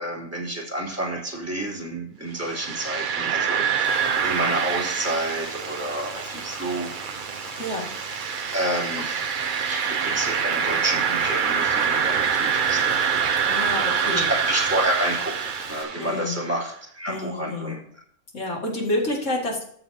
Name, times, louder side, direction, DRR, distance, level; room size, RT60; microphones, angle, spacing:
voice 1, 0.0-7.0 8.5-13.1 14.0-17.8, right 1 dB, 10° right, -5 dB, 3.1 m, -30 dB
sound 1, 2.4-16.4, right 7 dB, 50° right, 0.6 m, -26 dB
Frying (food), 3.8-15.8, left 3 dB, 85° left, 1.9 m, -43 dB
voice 2, 7.6-7.9 13.5-14.3 16.0-16.4 17.1-17.7 18.3-19.6, left 1 dB, 65° left, -1 dB, 2.5 m, -28 dB
14.0 x 6.9 x 2.8 m, 0.62 s
omnidirectional pair, 1.4 m